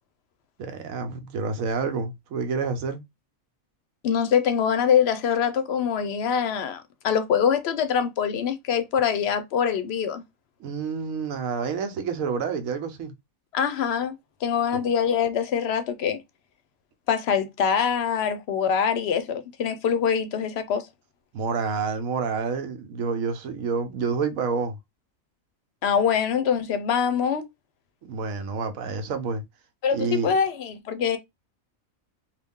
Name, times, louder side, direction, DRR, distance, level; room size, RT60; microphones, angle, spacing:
voice 1, 0.6-3.0 10.6-13.1 21.3-24.8 28.0-29.4 29.9-30.3, right 5 dB, 80° right, 1.1 m, -28 dB
voice 2, 4.0-10.2 13.5-14.1 14.4-16.2 17.1-20.9 25.8-27.5 29.8-31.2, left 7 dB, 60° left, 0.7 m, -24 dB
3.2 x 2.3 x 3.5 m
omnidirectional pair, 1.4 m